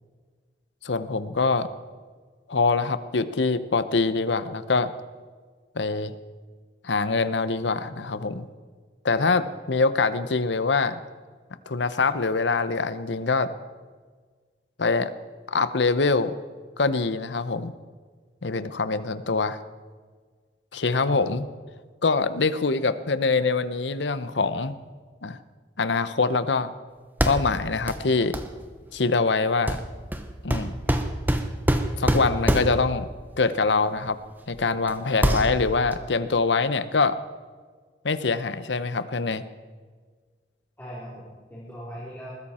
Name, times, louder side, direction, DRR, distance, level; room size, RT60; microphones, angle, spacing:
voice 1, 0.8-1.7 2.5-4.9 5.7-6.1 6.8-8.5 9.0-11.0 11.7-13.5 14.8-15.1 15.5-16.3 16.8-17.7 18.4-19.6 20.7-21.5 22.0-24.7 25.2-25.4 25.8-26.7 27.3-28.4 28.9-29.8 30.4-30.8 32.0-33.1 33.4-34.2 34.5-37.2 38.0-39.4, left 4 dB, 85° left, 13 dB, 0.9 m, -24 dB
sound 1, 27.2-27.6 27.9-28.0 28.3-28.5 29.7-33.0 34.1-34.2 34.6-34.9 35.2-36.0, right 1 dB, 10° right, 1.0 m, -25 dB
voice 2, 35.1-35.5 40.8-42.3, equal, 10° left, -7 dB, 3.3 m, -40 dB
21.0 x 14.5 x 4.3 m, 1.5 s
head